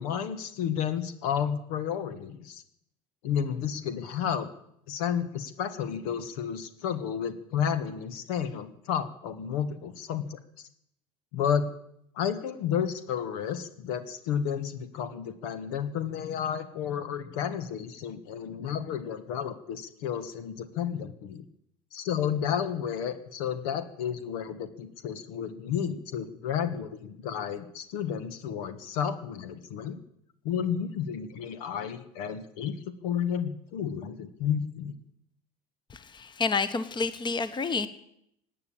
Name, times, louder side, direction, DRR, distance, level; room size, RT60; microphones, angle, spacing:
voice 1, 0.0-2.6 3.2-4.5 4.9-10.4 11.3-11.7 12.1-21.4 21.9-30.0 30.4-35.0, left 8 dB, 80° left, 10 dB, 1.6 m, -31 dB
voice 2, 36.1-37.9, left 4 dB, 25° left, 13 dB, 1.2 m, -29 dB
17.5 x 9.4 x 8.7 m, 0.74 s
supercardioid pair, 95°, 19 cm